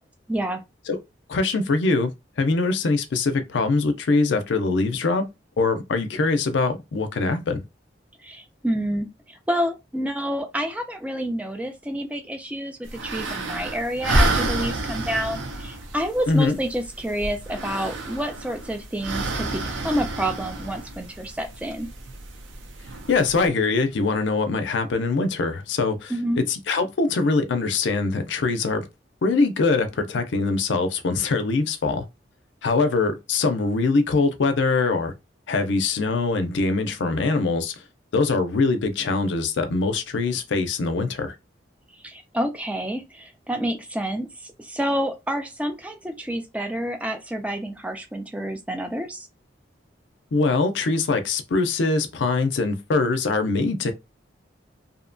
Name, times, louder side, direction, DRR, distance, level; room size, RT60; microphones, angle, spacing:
voice 1, 0.3-0.6 8.2-21.9 26.1-26.5 41.9-49.3, equal, 5° right, 0.3 m, -28 dB
voice 2, 1.3-2.1 2.4-5.3 5.6-7.6 16.3-16.6 23.1-28.9 29.2-32.1 32.6-35.1 35.5-37.7 38.1-41.3 50.3-53.9, left 3 dB, 75° left, 0.5 m, -23 dB
sound 1, 12.8-23.5, right 2 dB, 85° right, 0.6 m, -29 dB
2.7 x 2.1 x 2.5 m
head